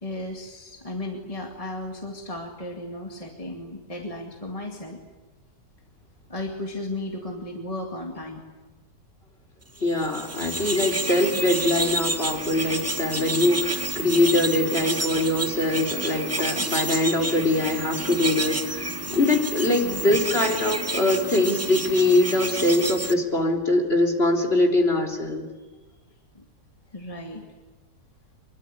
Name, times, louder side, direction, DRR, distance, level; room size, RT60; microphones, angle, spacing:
voice 1, 0.0-5.0 6.3-8.4 19.8-20.4 26.3-26.4 26.9-27.4, left 1 dB, 20° left, 1 dB, 2.4 m, -35 dB
voice 2, 9.8-25.4, left 2 dB, 40° left, 1 dB, 3.7 m, -23 dB
sound 1, 9.9-23.1, right 2 dB, 15° right, 0.6 m, -30 dB
25.0 x 22.5 x 9.6 m, 1.2 s
omnidirectional pair, 1.7 m